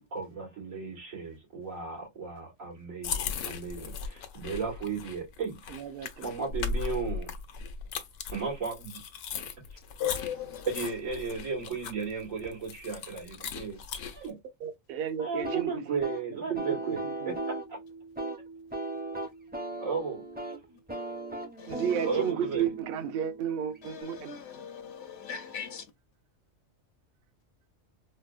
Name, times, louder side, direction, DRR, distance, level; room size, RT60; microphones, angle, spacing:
voice 1, 0.1-5.6 6.2-7.3 8.3-9.0 9.4-9.5 10.7-13.8 14.1-14.4 15.2-17.0 17.3-17.8 19.8-20.8 22.1-22.7, right 5 dB, 90° right, 2.4 m, -35 dB
sound 1, 3.0-14.3, left 5 dB, 90° left, 1.1 m, -38 dB
voice 2, 5.7-6.3 14.3-14.4 14.6-16.1 16.5-17.3 21.7-24.4, right 8 dB, 55° right, 0.7 m, -33 dB
voice 3, 10.0-10.7 21.6-22.3 23.8-25.9, left 9 dB, 65° left, 0.8 m, -38 dB
sound 2, 15.4-24.0, right 2 dB, 10° right, 0.4 m, -38 dB
4.2 x 2.0 x 2.4 m
omnidirectional pair, 1.4 m